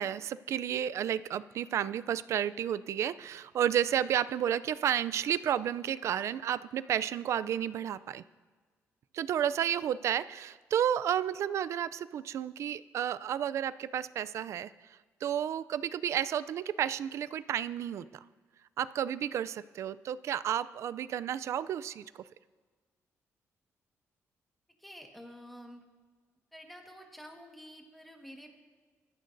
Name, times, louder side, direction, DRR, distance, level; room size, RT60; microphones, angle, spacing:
voice 1, 0.0-8.2 9.1-14.7 15.2-18.1 18.8-22.2, right 10 dB, 60° right, 15 dB, 0.4 m, -31 dB
voice 2, 24.8-25.8 26.5-28.6, equal, ahead, 2 dB, 1.5 m, -49 dB
22.0 x 13.5 x 2.6 m, 1.4 s
cardioid pair, 160°, 5 cm